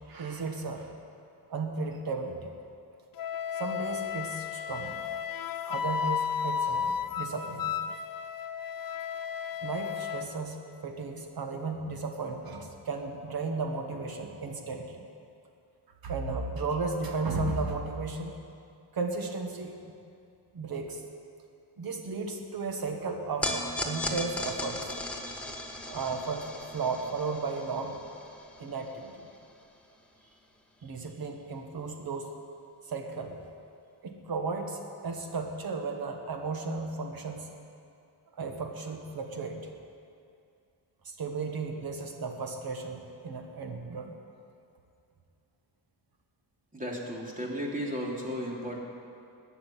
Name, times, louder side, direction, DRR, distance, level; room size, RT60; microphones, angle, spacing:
voice 1, 0.1-0.9 1.5-2.5 3.5-4.9 5.7-7.7 9.6-10.6 10.8-14.9 16.0-18.3 18.9-19.7 20.5-21.0 21.8-24.9 25.9-28.0 28.6-29.1 30.8-32.3 32.9-33.4 34.0-37.5 38.3-39.6 41.1-44.2, right 4 dB, 55° right, 4 dB, 1.8 m, -34 dB
Wind instrument woodwind instrument, 3.2-10.3, left 7 dB, 55° left, 0.7 m, -33 dB
sound 1, 23.4-29.8, left 1 dB, 5° left, 1.6 m, -37 dB
voice 2, 46.7-48.8, equal, 20° right, -2 dB, 3.0 m, -34 dB
20.0 x 6.9 x 9.3 m, 2.5 s
cardioid pair, 125°, 42 cm